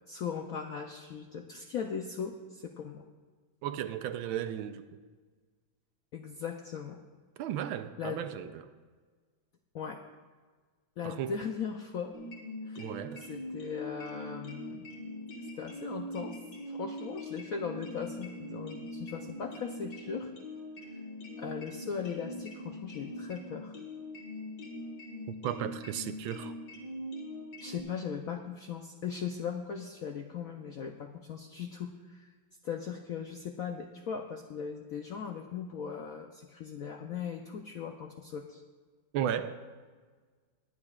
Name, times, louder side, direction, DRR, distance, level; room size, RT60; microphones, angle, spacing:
voice 1, 0.1-3.1 6.1-7.0 8.0-8.2 9.7-10.0 11.0-12.2 12.6-12.9 13.2-14.9 15.4-16.4 16.7-20.3 20.9-21.0 21.4-23.8 27.6-32.3 32.6-38.6, left 7 dB, 85° left, 4 dB, 0.7 m, -39 dB
voice 2, 3.6-4.9 7.4-8.6 11.0-11.3 12.8-13.3 25.3-26.5 39.1-39.6, right 10 dB, 80° right, 10 dB, 1.4 m, -35 dB
sound 1, 12.1-27.8, left 1 dB, 55° left, 2.2 m, -42 dB
21.5 x 9.6 x 2.4 m, 1.5 s
omnidirectional pair, 2.3 m